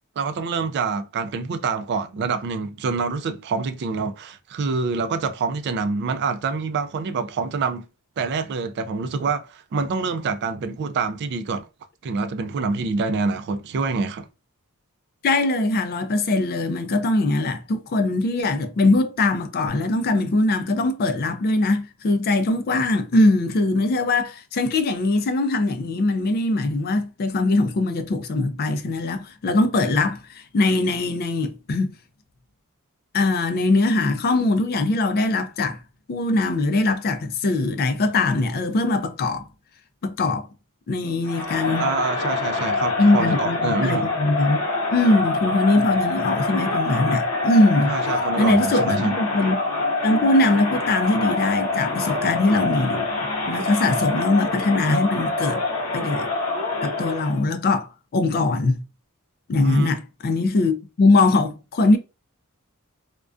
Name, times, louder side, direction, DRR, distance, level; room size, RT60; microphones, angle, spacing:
voice 1, 0.2-7.9 8.2-11.7 12.0-14.3 41.8-44.1 47.9-49.1 59.6-59.9, right 4 dB, 50° right, 0.3 m, -26 dB
voice 2, 15.2-31.9 33.1-35.8 36.1-39.5 40.0-40.5 40.9-41.9 43.0-44.6 44.9-47.9 48.4-49.6 50.0-55.6 55.9-56.3 56.8-58.8 59.5-62.0, left 2 dB, 45° left, 0.3 m, -21 dB
Crowd, 41.3-57.4, left 3 dB, 75° left, 0.7 m, -25 dB
2.3 x 2.2 x 2.4 m
head